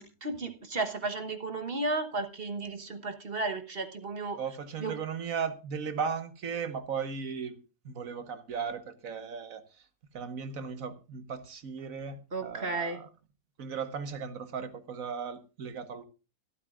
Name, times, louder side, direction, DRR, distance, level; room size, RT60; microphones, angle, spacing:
voice 1, 0.0-4.4 4.8-4.9 12.3-13.0, right 3 dB, 40° right, 1.3 m, -34 dB
voice 2, 4.4-7.6 7.8-9.6 10.1-13.1 13.6-16.0, right 6 dB, 60° right, 1.6 m, -36 dB
25.0 x 8.8 x 2.5 m
omnidirectional pair, 1.7 m